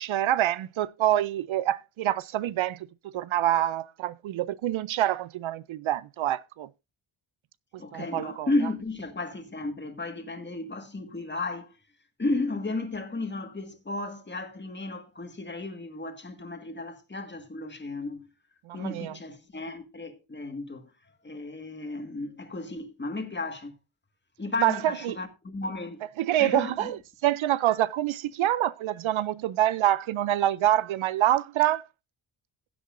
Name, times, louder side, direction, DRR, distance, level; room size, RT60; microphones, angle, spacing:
voice 1, 0.0-6.7 7.9-8.5 18.7-19.2 24.6-24.8 25.0-25.2 26.2-31.8, right 13 dB, 70° right, 0.5 m, -26 dB
voice 2, 7.8-11.7 12.2-18.3 18.7-20.9 21.2-23.7 24.4-26.0 26.4-26.9, left 2 dB, 20° left, 1.7 m, -34 dB
16.0 x 8.3 x 2.5 m
wide cardioid pair, 115°, 49 cm